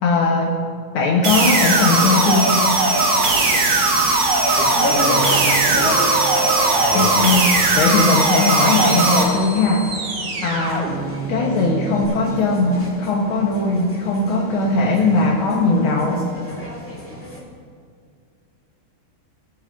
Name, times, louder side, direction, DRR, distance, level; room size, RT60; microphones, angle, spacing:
voice 1, 0.0-0.6 0.9-2.6 6.9-9.9 10.4-10.9 11.3-16.3, left 3 dB, 90° left, -2 dB, 1.9 m, -19 dB
sound 1, 1.2-9.2, right 2 dB, 85° right, 2.2 m, -18 dB
sound 2, 1.8-17.4, equal, 5° left, 1.4 m, -35 dB
voice 2, 4.6-6.1, left 3 dB, 70° left, -2 dB, 2.5 m, -24 dB
sound 3, 4.9-12.1, right 4 dB, 60° right, 2.0 m, -29 dB
21.0 x 8.6 x 2.5 m, 2.1 s
omnidirectional pair, 2.2 m